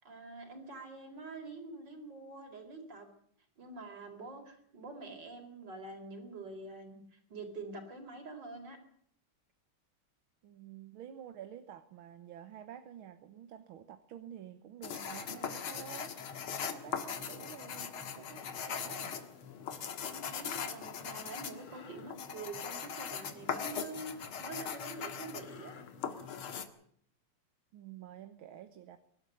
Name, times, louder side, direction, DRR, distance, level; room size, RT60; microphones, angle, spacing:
voice 1, 0.0-3.1 3.6-8.8 17.2-17.3 20.1-25.8, right 3 dB, 55° right, 6 dB, 5.0 m, -46 dB
voice 2, 10.4-16.1 16.7-19.2 27.7-29.0, right 10 dB, 75° right, 10 dB, 1.9 m, -49 dB
sound 1, 14.8-26.7, left 7 dB, 85° left, 2.6 m, -40 dB
23.0 x 12.5 x 9.8 m, 0.66 s
omnidirectional pair, 2.3 m